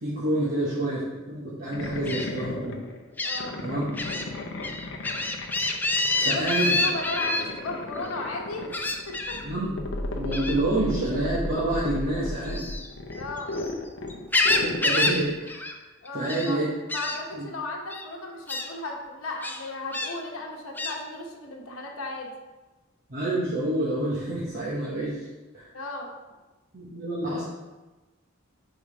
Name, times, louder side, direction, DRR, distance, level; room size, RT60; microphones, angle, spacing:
voice 1, 0.0-2.8 3.6-3.8 6.2-6.8 9.4-9.8 10.2-12.6 14.5-15.8 16.1-16.7 17.3-17.4 23.1-25.3 25.5-25.7 26.7-27.4, right 1 dB, 45° right, -8 dB, 1.1 m, -28 dB
sound 1, 1.7-15.5, left 2 dB, 60° left, 0.7 m, -35 dB
Gull seagull, 2.1-2.2 3.2-3.4 4.0-4.2 4.6-7.4 8.7-9.4 10.3-10.6 12.4-13.7 14.1-15.2 15.5-15.7 16.0-16.5 16.9-17.2 17.9-18.0 18.5-18.7 19.4-20.1 20.8-21.0, left 2 dB, 10° left, 0.3 m, -27 dB
voice 2, 3.2-3.6 4.3-4.6 6.2-6.4 6.8-8.7 9.1-9.4 13.1-13.5 16.0-16.6 16.9-22.3 25.7-26.1, left 2 dB, 85° left, 0 dB, 1.0 m, -35 dB
5.1 x 3.8 x 5.0 m, 1.1 s
head